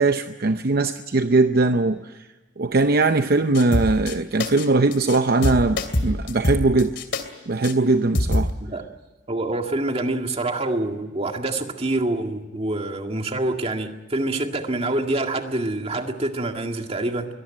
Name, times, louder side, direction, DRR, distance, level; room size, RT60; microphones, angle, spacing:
voice 1, 0.0-2.1 2.6-7.0 7.5-8.5, right 3 dB, 50° right, 9 dB, 0.7 m, -20 dB
sound 1, 3.5-4.1 4.4-4.7 4.9-5.2 5.4-7.2 7.6-7.7 8.1-8.5, left 1 dB, 65° left, 2.8 m, -24 dB
voice 2, 9.3-17.3, right 2 dB, 30° right, 4 dB, 2.0 m, -26 dB
23.0 x 18.5 x 9.1 m, 1.2 s
head